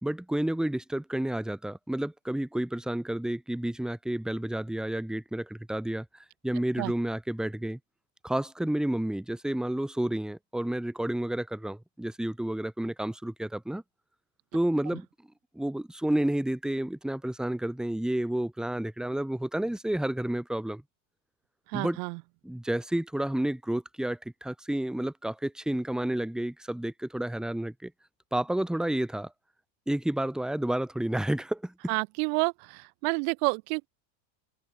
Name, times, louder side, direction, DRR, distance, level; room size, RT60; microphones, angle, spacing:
voice 1, 0.0-6.1 6.4-7.8 8.2-13.8 14.5-15.1 15.5-20.8 21.7-22.0 22.4-27.9 28.3-29.3 29.9-31.9, right 1 dB, ahead, 2.2 m, -30 dB
voice 2, 21.7-22.2 31.9-33.9, right 39 dB, 50° right, 1.8 m, -29 dB
supercardioid pair, 160°, 49 cm